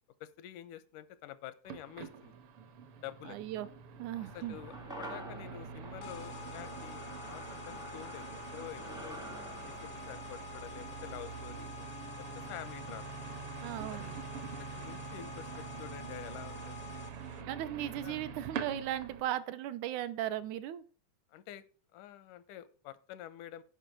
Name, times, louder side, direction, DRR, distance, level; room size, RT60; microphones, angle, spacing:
voice 1, 0.2-2.4 3.0-3.4 4.3-9.2 9.7-11.9 12.2-13.2 13.9-14.5 14.7-16.8 17.2-17.5 18.0-18.2 21.3-21.6 21.9-23.6, left 12 dB, 90° left, 15 dB, 2.3 m, -48 dB
sound 1, 1.7-19.2, right 7 dB, 60° right, 1.6 m, -45 dB
voice 2, 3.3-3.7 4.0-4.6 13.6-14.3 17.5-20.8, right 12 dB, 80° right, 13 dB, 2.1 m, -37 dB
sound 2, 4.2-12.7 12.9-13.0, right 1 dB, 5° right, 0.4 m, -50 dB
sound 3, 6.0-17.4, left 9 dB, 70° left, 1.0 m, -48 dB
9.9 x 5.3 x 7.5 m, 0.40 s
omnidirectional pair, 3.5 m